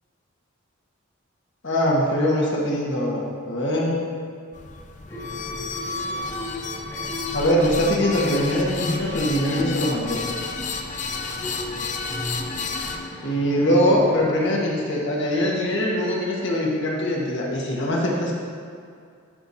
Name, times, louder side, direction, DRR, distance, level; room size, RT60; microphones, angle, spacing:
voice 1, 1.6-4.0 7.3-10.2 13.2-18.3, equal, 60° left, -3 dB, 1.5 m, -22 dB
sound 1, 4.5-13.0, left 4 dB, 35° left, 0.5 m, -32 dB
sound 2, 5.1-14.3, left 1 dB, 20° left, 1.7 m, -35 dB
12.0 x 6.2 x 2.8 m, 2.2 s
head